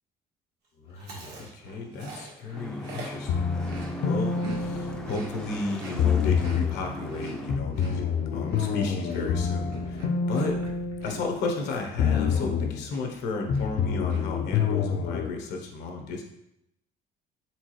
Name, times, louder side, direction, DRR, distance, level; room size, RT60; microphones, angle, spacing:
voice 1, 0.8-8.1 8.3-10.0 10.3-10.6 11.0-16.2, left 3 dB, 85° left, 2 dB, 0.9 m, -33 dB
Chewing mastication, 1.0-4.6 4.9-12.6 12.9-13.2 13.5-14.2, right 2 dB, 75° right, 1.4 m, -44 dB
sound 1, 2.5-7.6, left 1 dB, 5° left, 0.4 m, -39 dB
sound 2, 3.3-5.5 6.0-6.8 7.5-11.6 12.0-12.8 13.5-15.3, left 6 dB, 60° left, 0.5 m, -27 dB
4.3 x 3.8 x 3.1 m, 0.82 s
cardioid pair, 110°, 17 cm